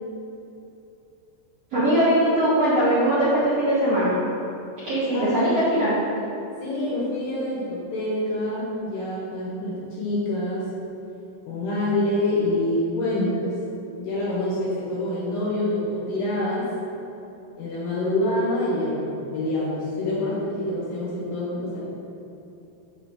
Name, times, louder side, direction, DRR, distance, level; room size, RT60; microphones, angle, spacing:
voice 1, 1.7-4.1 4.8-5.9, right 1 dB, 55° right, -13 dB, 1.9 m, -21 dB
voice 2, 5.1-5.5 6.6-10.7 11.5-13.6 14.0-16.7 17.6-21.8, left 1 dB, 75° left, -7 dB, 3.2 m, -26 dB
7.6 x 6.8 x 3.0 m, 2.8 s
omnidirectional pair, 4.8 m